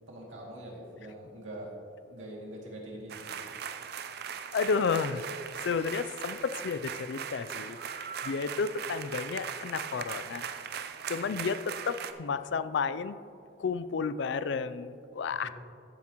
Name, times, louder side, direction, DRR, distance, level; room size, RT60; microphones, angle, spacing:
voice 1, 0.1-1.7 2.1-3.5 15.4-15.5, right 1 dB, 90° right, -3 dB, 2.4 m, -44 dB
sound 1, 3.1-12.1, right 7 dB, 55° right, 0.5 m, -39 dB
voice 2, 4.5-5.2 5.6-10.5 11.1-13.2 13.6-15.5, left 5 dB, 65° left, 13 dB, 0.4 m, -32 dB
14.5 x 7.8 x 3.0 m, 2.6 s
head